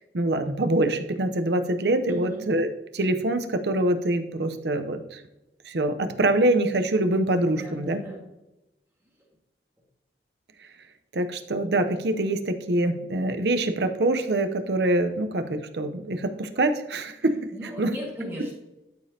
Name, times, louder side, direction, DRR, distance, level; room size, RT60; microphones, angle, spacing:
voice 1, 0.1-5.2 5.7-8.0 11.1-17.5 17.8-17.9, right 1 dB, 70° right, 8 dB, 0.7 m, -25 dB
voice 2, 2.1-2.5 7.5-8.2 17.5-18.5, equal, 15° right, -4 dB, 1.8 m, -37 dB
12.5 x 5.1 x 2.8 m, 0.96 s
head